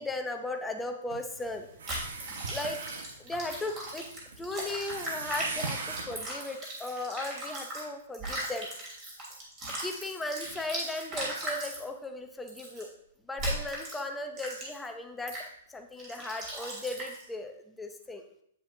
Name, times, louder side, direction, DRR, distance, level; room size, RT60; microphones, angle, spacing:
voice 1, 0.0-1.7 2.5-2.8 3.2-4.1 4.4-8.7 9.8-12.9 13.3-15.4 15.7-18.2, left 2 dB, 5° left, 5 dB, 0.6 m, -37 dB
sound 1, 1.1-6.3, right 4 dB, 80° right, 1.2 m, -41 dB
sound 2, 1.9-7.8 8.1-11.8 12.5-12.8 13.4-14.0 14.4-14.9 15.3-15.5 16.0-17.2, right 1 dB, 25° right, 2.8 m, -38 dB
8.7 x 7.6 x 2.7 m, 0.71 s
hypercardioid pair, 170°, 0 cm